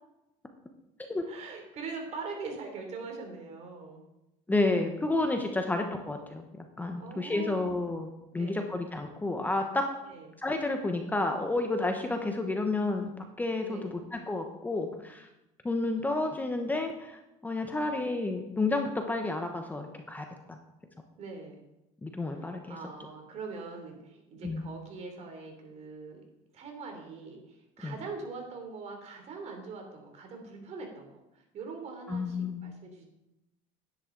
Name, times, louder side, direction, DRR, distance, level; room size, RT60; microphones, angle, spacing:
voice 1, 1.3-4.0 5.6-5.9 7.0-7.9 8.4-8.7 10.1-10.3 13.6-14.0 21.2-21.6 22.2-26.2 26.5-33.0, right 4 dB, 45° right, 3 dB, 3.1 m, -42 dB
voice 2, 4.5-6.4 6.8-8.1 8.3-9.9 10.4-13.1 13.4-15.3 15.6-20.3 22.0-22.8 24.4-24.6 27.8-27.9 32.1-32.6, left 2 dB, 10° left, 4 dB, 0.9 m, -30 dB
11.0 x 10.0 x 3.9 m, 0.92 s
cardioid pair, 125°, 16 cm